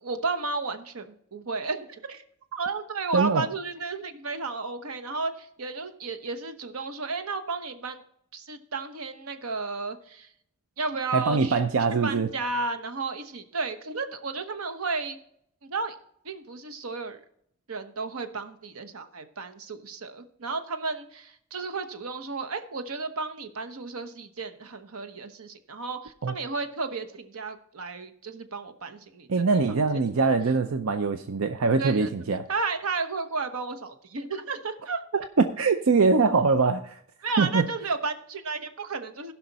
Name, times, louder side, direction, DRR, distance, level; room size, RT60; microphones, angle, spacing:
voice 1, 0.0-2.2 2.5-8.0 8.3-10.3 10.8-11.5 12.0-15.2 15.6-15.9 16.2-17.2 17.7-29.6 29.9-30.1 31.8-32.1 32.5-35.0 37.2-39.3, right 4 dB, 90° right, 8 dB, 1.0 m, -33 dB
voice 2, 3.1-3.5 11.1-12.3 26.2-26.3 29.3-32.5 35.6-36.9 37.4-37.7, right 4 dB, 70° right, 8 dB, 0.6 m, -23 dB
16.0 x 5.8 x 4.1 m, 0.69 s
head